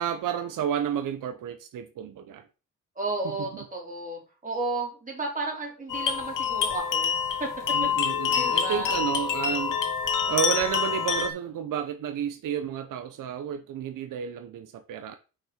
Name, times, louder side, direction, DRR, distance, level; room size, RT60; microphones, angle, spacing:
voice 1, 0.0-2.5 3.2-3.6 7.7-9.8 10.2-15.2, right 8 dB, 90° right, 0.9 m, -31 dB
voice 2, 3.0-7.1 7.4-7.8 8.3-9.0, right 2 dB, 25° right, 3.6 m, -33 dB
sound 1, 5.9-11.3, left 7 dB, 85° left, 1.4 m, -26 dB
6.5 x 5.9 x 5.0 m
cardioid pair, 115°, 31 cm